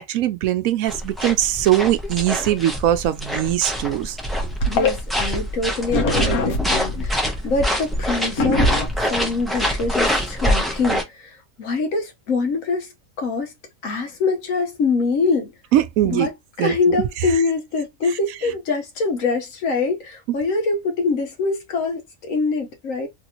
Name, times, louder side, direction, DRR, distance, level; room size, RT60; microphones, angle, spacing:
voice 1, 0.0-4.2 15.7-16.3 16.6-17.0, right 12 dB, 80° right, 1.0 m, -21 dB
sound 1, 0.9-11.0, equal, ahead, 0.4 m, -25 dB
sound 2, 4.6-4.9 5.9-7.0 8.4-8.9, left 2 dB, 90° left, 1.4 m, -22 dB
voice 2, 4.7-8.7 9.0-12.9 13.2-13.5 13.8-15.5 16.0-16.3 16.6-23.1, left 3 dB, 70° left, 1.3 m, -24 dB
3.3 x 2.6 x 2.9 m
omnidirectional pair, 1.5 m